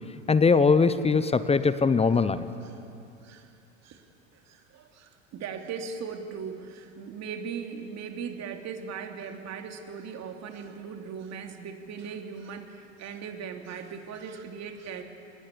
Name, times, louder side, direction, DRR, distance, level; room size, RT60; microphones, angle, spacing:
voice 1, 0.3-2.4, left 4 dB, 15° left, 14 dB, 0.9 m, -21 dB
voice 2, 3.2-3.5 3.8-4.1 4.3-15.0, right 6 dB, 40° right, 4 dB, 3.0 m, -39 dB
25.5 x 20.5 x 9.8 m, 2.6 s
hypercardioid pair, 85°, 40 cm